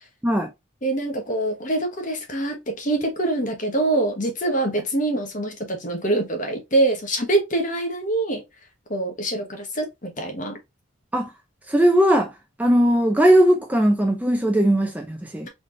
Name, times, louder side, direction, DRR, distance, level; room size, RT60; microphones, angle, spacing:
voice 1, 0.8-8.4 8.9-10.6, right 2 dB, 40° left, 1.1 m, -24 dB
voice 2, 11.7-12.3 12.6-15.5, right 1 dB, 5° right, 0.4 m, -18 dB
4.1 x 3.4 x 2.5 m
head